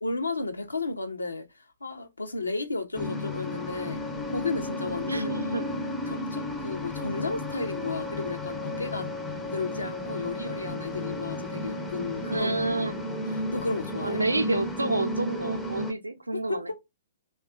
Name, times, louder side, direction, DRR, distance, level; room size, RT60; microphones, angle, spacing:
voice 1, 0.0-1.5 1.8-5.3 6.1-9.1 9.5-12.5 13.3-14.2 16.3-16.8, left 3 dB, 75° left, 0.5 m, -33 dB
sound 1, 2.9-15.9, left 1 dB, 5° left, 0.4 m, -33 dB
voice 2, 5.1-5.7 12.3-12.9 14.0-16.7, right 2 dB, 80° right, 0.4 m, -29 dB
2.8 x 2.2 x 2.3 m
figure-of-eight pair, 120°, 0 cm